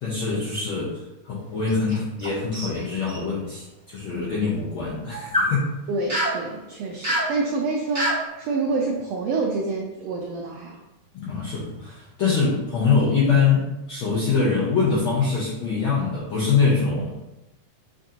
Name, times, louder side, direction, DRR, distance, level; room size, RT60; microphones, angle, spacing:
voice 1, 0.0-5.6 11.1-17.2, left 5 dB, 75° left, -7 dB, 1.2 m, -23 dB
sound 1, 1.6-2.3 2.5-3.2 5.1-5.5 6.1-6.4 7.0-7.3 7.9-8.2, equal, 25° right, 1.0 m, -25 dB
voice 2, 5.9-10.8, right 3 dB, 90° right, 0 dB, 1.4 m, -27 dB
7.5 x 2.6 x 2.8 m, 0.99 s
omnidirectional pair, 3.5 m